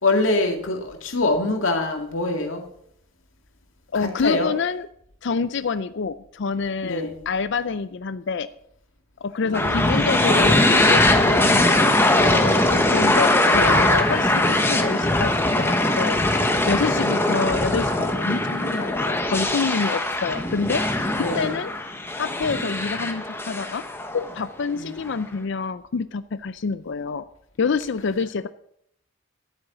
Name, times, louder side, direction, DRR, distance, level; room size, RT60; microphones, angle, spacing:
voice 1, 0.0-2.6 3.9-4.5 6.8-7.2 9.4-10.2 13.5-14.0 16.9-17.2 21.2-21.5 24.7-25.1, left 2 dB, 85° left, 3 dB, 2.2 m, -25 dB
voice 2, 3.9-4.9 5.2-8.5 9.2-16.2 16.7-21.7 22.2-23.8 24.1-27.2 27.6-28.5, left 5 dB, 65° left, 13 dB, 0.5 m, -27 dB
sound 1, 9.5-24.5, left 1 dB, 10° left, 1.3 m, -21 dB
11.5 x 9.0 x 6.8 m, 0.71 s
head